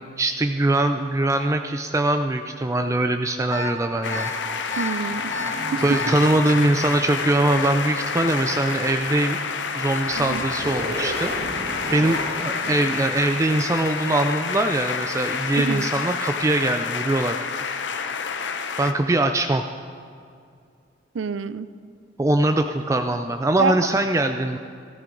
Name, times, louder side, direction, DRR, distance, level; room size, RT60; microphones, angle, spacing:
voice 1, 0.2-4.3 5.8-9.4 9.7-11.6 11.9-17.4 18.8-19.6 22.2-24.6, right 2 dB, 15° right, 7 dB, 0.3 m, -22 dB
sound 1, 3.5-3.7 4.1-4.3 4.7-4.9 5.3-5.5 5.9-6.1, left 2 dB, 15° left, 1.3 m, -30 dB
sound 2, 4.0-18.9, left 6 dB, 70° left, 0.7 m, -29 dB
voice 2, 4.8-5.3 5.7-5.8 10.2-10.5 15.6-15.9 21.1-21.7 23.6-23.8, right 5 dB, 80° right, 14 dB, 0.5 m, -26 dB
sound 3, 5.0-13.7, right 1 dB, 55° right, 1.5 m, -36 dB
15.0 x 14.0 x 3.9 m, 2.3 s
head